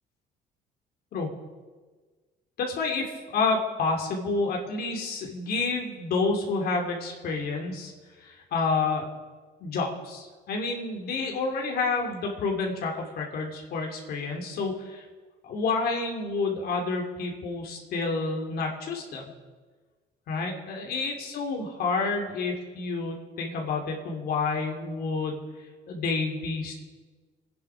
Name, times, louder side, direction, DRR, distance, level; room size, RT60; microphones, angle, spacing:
voice 1, 2.6-7.9 8.2-9.1 9.6-15.0 15.4-19.2 20.3-25.4 25.9-26.7, left 4 dB, 65° left, 1 dB, 3.0 m, -29 dB
24.0 x 10.0 x 5.0 m, 1.4 s
cardioid pair, 110°, 17 cm